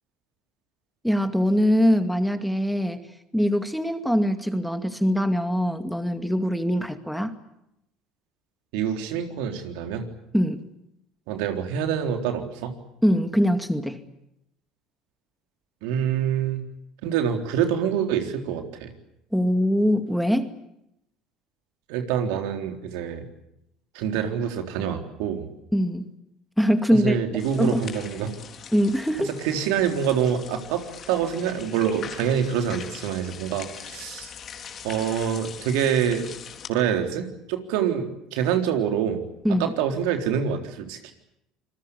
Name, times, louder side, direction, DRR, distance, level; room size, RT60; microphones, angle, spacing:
voice 1, 1.0-3.1 3.3-7.3 10.3-10.6 13.0-14.0 19.3-20.5 25.7-26.1 26.6-27.2 27.6-27.8 28.7-29.3 39.4-39.7, equal, ahead, 8 dB, 2.3 m, -22 dB
voice 2, 8.7-10.1 11.3-12.7 15.8-16.6 17.0-18.9 21.9-23.3 23.9-25.5 26.9-28.3 29.2-34.3 34.8-36.2 36.7-39.2 39.6-41.1, right 8 dB, 80° right, 5 dB, 3.8 m, -26 dB
sound 1, 27.4-36.7, left 7 dB, 45° left, 3.5 m, -42 dB
27.5 x 21.0 x 8.4 m, 0.82 s
supercardioid pair, 90°, 0 cm